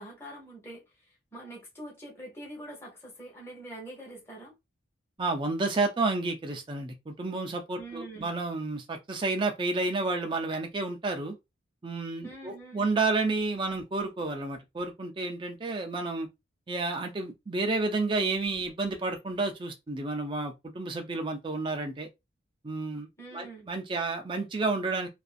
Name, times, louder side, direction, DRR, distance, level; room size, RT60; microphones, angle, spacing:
voice 1, 0.0-4.5 7.8-8.4 12.2-12.9 23.2-23.7, right 1 dB, 15° left, 0.8 m, -45 dB
voice 2, 5.2-11.4 11.8-16.3 16.7-22.1 22.6-23.1 23.3-25.1, right 3 dB, 25° right, 0.4 m, -30 dB
2.5 x 2.3 x 2.4 m
head